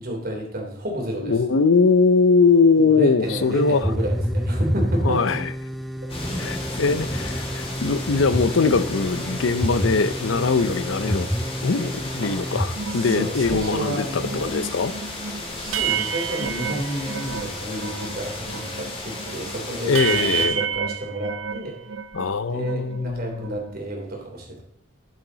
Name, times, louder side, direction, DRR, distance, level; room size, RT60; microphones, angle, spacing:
voice 1, 0.0-1.4 2.7-5.4 6.6-6.9 12.2-12.3 12.9-14.5 15.5-21.8 22.4-24.6, right 1 dB, 50° right, 0 dB, 3.2 m, -31 dB
voice 2, 1.2-3.9 5.0-5.5 6.4-11.3 11.6-14.9 19.9-20.6 22.1-23.6, left 4 dB, 80° left, 14 dB, 0.6 m, -21 dB
sound 1, 3.2-12.7, equal, ahead, 0.5 m, -28 dB
sound 2, 6.1-20.5, left 1 dB, 30° left, 2.4 m, -33 dB
sound 3, 12.7-18.2 18.4-22.3 22.6-23.8, right 7 dB, 85° right, 0.6 m, -30 dB
12.5 x 7.2 x 4.0 m, 0.68 s
head